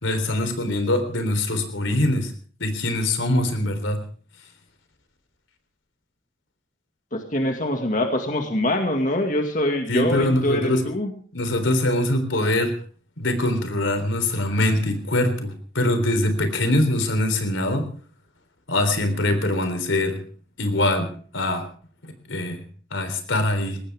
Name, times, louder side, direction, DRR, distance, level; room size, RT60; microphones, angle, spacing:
voice 1, 0.0-2.3 2.6-4.0 9.9-10.8 11.3-12.7 13.2-17.9 18.7-20.2 20.6-21.7 22.0-22.6 22.9-23.8, left 1 dB, 85° left, 7 dB, 3.7 m, -23 dB
voice 2, 7.1-11.1, left 1 dB, 40° left, 4 dB, 2.1 m, -24 dB
21.5 x 18.0 x 3.6 m, 0.44 s
head